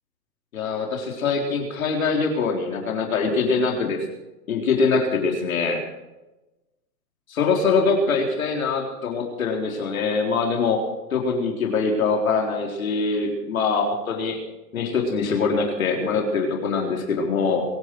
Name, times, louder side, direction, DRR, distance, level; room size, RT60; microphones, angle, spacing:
voice 1, 0.5-4.0 4.5-5.8 7.3-10.8 11.1-14.4 14.7-17.7, left 4 dB, 55° left, 1 dB, 3.9 m, -23 dB
24.5 x 11.0 x 4.8 m, 1.0 s
hypercardioid pair, 170°, 48 cm